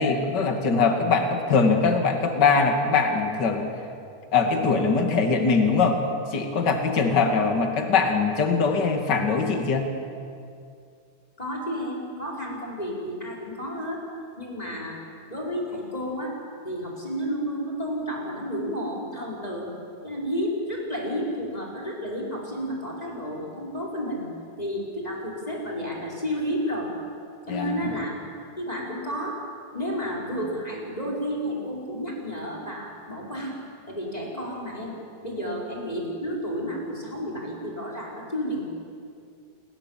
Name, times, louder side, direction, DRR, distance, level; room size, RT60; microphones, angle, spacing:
voice 1, 0.0-3.7 4.3-9.9 27.5-27.9, left 4 dB, 55° left, 4 dB, 1.2 m, -22 dB
voice 2, 11.4-14.0 14.4-15.0 15.3-16.4 16.6-19.7 20.0-24.3 24.6-26.9 27.5-28.1 28.6-29.4 29.7-33.6 33.9-34.9 35.2-38.7, equal, 10° left, -3 dB, 4.5 m, -31 dB
28.0 x 22.0 x 7.5 m, 2.4 s
omnidirectional pair, 5.5 m